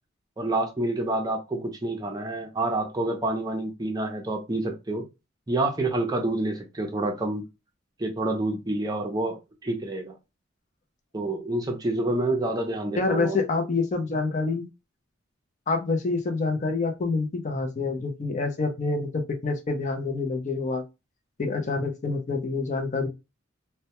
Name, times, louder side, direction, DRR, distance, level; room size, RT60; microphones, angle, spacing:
voice 1, 0.4-5.0 5.5-7.4 8.0-10.2 11.1-13.4, right 2 dB, 20° right, 0.5 m, -28 dB
voice 2, 12.9-14.7 15.7-20.8 21.4-23.1, left 3 dB, 35° left, 0.5 m, -27 dB
2.1 x 2.1 x 2.8 m
head